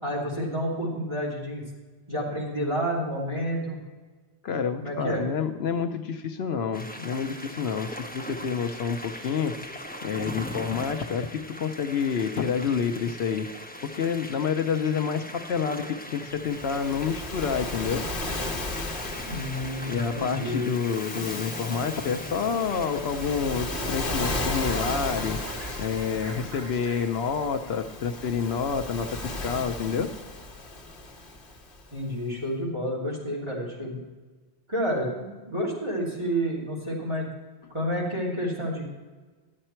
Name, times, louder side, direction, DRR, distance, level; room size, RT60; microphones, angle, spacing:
voice 1, 0.0-1.6 2.1-3.8 4.8-5.2 19.2-20.6 31.9-34.0 34.7-37.3 37.7-38.9, equal, 25° right, -6 dB, 2.9 m, -29 dB
voice 2, 4.4-9.5 10.0-13.5 13.9-18.0 19.9-25.4 25.8-30.1, left 6 dB, 75° left, 8 dB, 1.0 m, -28 dB
sound 1, 6.7-26.1, left 1 dB, 10° left, 1.0 m, -41 dB
Waves surf, 16.4-31.9, left 2 dB, 55° left, 1.4 m, -35 dB
sound 2, 23.0-29.1, right 3 dB, 90° right, 1.6 m, -42 dB
12.5 x 8.8 x 4.4 m, 1.3 s
omnidirectional pair, 1.1 m